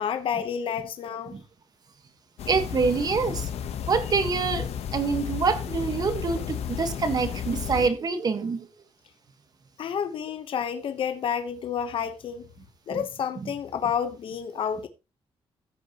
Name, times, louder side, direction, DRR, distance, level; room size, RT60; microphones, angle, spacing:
voice 1, 0.0-1.4 9.8-12.5 12.9-14.9, left 8 dB, 60° left, 1.0 m, -30 dB
sound 1, 2.4-7.9, left 9 dB, 90° left, 1.0 m, -33 dB
voice 2, 2.5-3.5 3.9-8.7 12.9-13.0 13.4-13.5, right 5 dB, 40° right, 1.4 m, -26 dB
14.0 x 8.3 x 3.0 m
wide cardioid pair, 165°, 10 cm